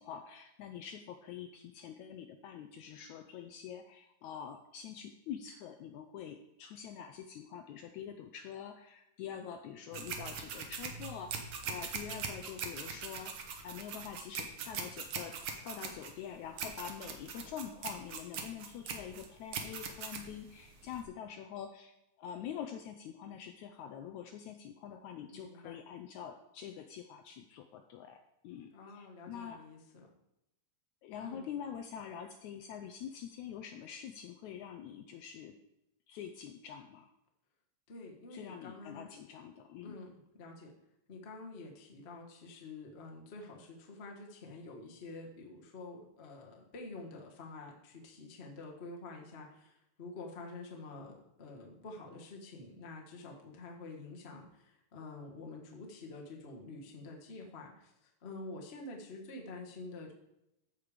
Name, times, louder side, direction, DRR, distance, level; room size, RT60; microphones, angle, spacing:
voice 1, 0.0-29.6 31.0-35.5 36.1-37.1 38.3-40.0, left 8 dB, 80° left, 6 dB, 1.7 m, -46 dB
sound 1, 9.9-21.0, right 5 dB, 65° right, 1.4 m, -41 dB
voice 2, 25.3-25.8 28.7-30.1 31.2-31.4 37.9-39.1 39.8-40.7 41.1-60.1, left 3 dB, 45° left, 0 dB, 0.8 m, -48 dB
14.0 x 5.3 x 5.0 m, 0.86 s
omnidirectional pair, 3.9 m